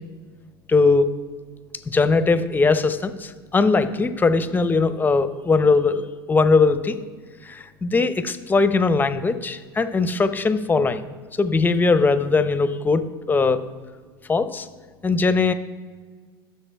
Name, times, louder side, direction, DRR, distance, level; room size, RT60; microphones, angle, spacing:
voice 1, 0.7-1.1 1.9-7.0 7.4-11.1 11.4-13.6 14.3-14.7 15.0-15.5, left 4 dB, 15° left, 12 dB, 0.6 m, -20 dB
14.5 x 6.6 x 2.3 m, 1.5 s
hypercardioid pair, 95°, 12 cm